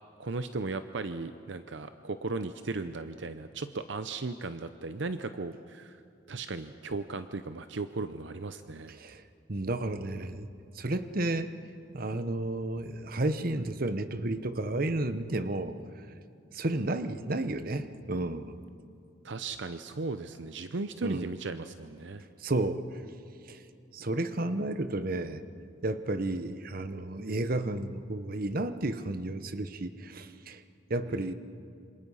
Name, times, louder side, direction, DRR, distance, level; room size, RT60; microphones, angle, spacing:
voice 1, 0.2-6.0 6.3-8.9 19.2-22.2 31.1-31.3, right 3 dB, 70° right, 10 dB, 0.7 m, -36 dB
voice 2, 9.5-10.5 10.8-11.5 11.9-15.8 16.5-18.6 21.0-21.3 22.4-22.8 23.5-23.6 23.9-25.4 25.8-30.6 30.9-31.3, right 2 dB, 50° right, 11 dB, 1.0 m, -32 dB
27.5 x 26.0 x 5.6 m, 2.5 s
head